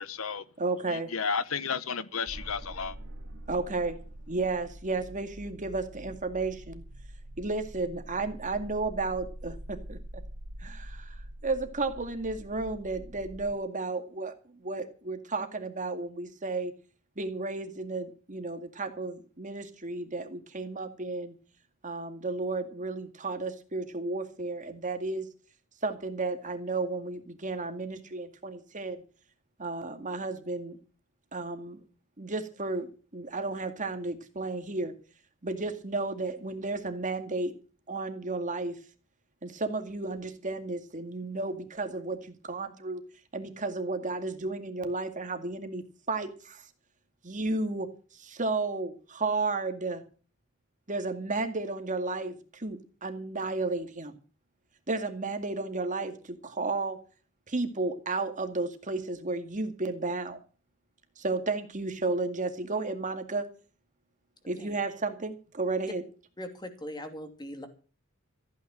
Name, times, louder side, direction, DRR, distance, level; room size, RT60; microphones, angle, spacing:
voice 1, 0.0-0.4 0.9-2.9, left 5 dB, 75° left, 1.0 m, -32 dB
voice 2, 0.6-1.1 3.5-4.0 4.3-6.8 7.4-10.0 10.6-16.7 17.2-21.3 21.8-25.3 25.8-29.0 29.6-30.8 31.3-31.8 32.2-34.9 35.4-37.5 37.9-38.8 39.4-43.0 43.3-46.6 47.2-50.0 50.9-54.2 54.9-57.0 57.5-60.4 61.2-63.5 64.5-66.0, right 3 dB, 40° right, 2.2 m, -33 dB
sound 1, 2.3-13.5, right 1 dB, 70° right, 3.0 m, -45 dB
voice 3, 66.4-67.7, equal, 20° left, 2.7 m, -40 dB
15.0 x 9.3 x 7.4 m
head